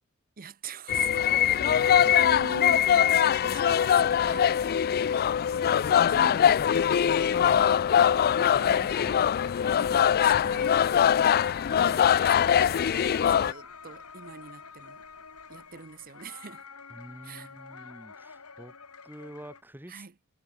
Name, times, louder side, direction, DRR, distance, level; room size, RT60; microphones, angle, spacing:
voice 1, 0.4-1.1 1.4-4.5 5.7-6.8 7.5-7.9 8.4-9.1 9.7-10.9 11.7-15.0 15.5-16.7 17.2-17.5 19.9-20.1, right 5 dB, 40° right, 0.7 m, -43 dB
sound 1, 0.9-13.5, left 9 dB, 45° left, 0.3 m, -22 dB
voice 2, 1.6-2.4 7.4-7.7 8.2-9.2 16.9-18.7 19.0-20.1, equal, 10° right, 2.9 m, -47 dB
sound 2, 4.0-19.6, left 6 dB, 80° left, 4.9 m, -47 dB
sound 3, 4.1-16.1, right 2 dB, 85° right, 6.1 m, -66 dB
head